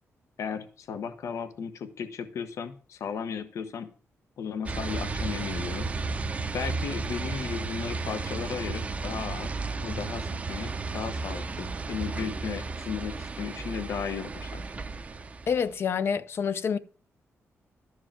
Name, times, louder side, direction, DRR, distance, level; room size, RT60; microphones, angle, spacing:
voice 1, 0.4-3.9 4.4-5.9 6.5-14.6, left 6 dB, 80° left, 1.0 m, -35 dB
sound 1, 4.7-15.8, right 3 dB, 25° right, 0.6 m, -34 dB
voice 2, 15.5-16.8, left 6 dB, 50° left, 0.6 m, -27 dB
13.0 x 4.8 x 7.4 m
wide cardioid pair, 175°, 5 cm